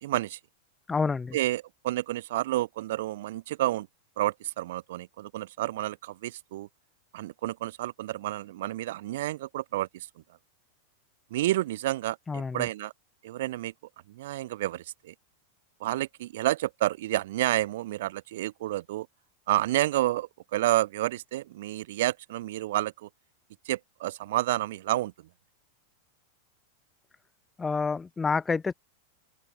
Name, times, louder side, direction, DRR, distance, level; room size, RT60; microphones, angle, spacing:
voice 1, 0.0-0.4 1.3-3.9 4.2-6.7 7.1-10.1 11.3-12.9 13.2-13.7 14.1-15.1 15.8-19.1 19.5-23.1 23.7-25.1, right 15 dB, 55° right, 0.5 m, -30 dB
voice 2, 0.9-1.4 12.3-12.7 27.6-28.7, left 4 dB, 15° left, 0.7 m, -28 dB
open air
figure-of-eight pair, 90°, 0 cm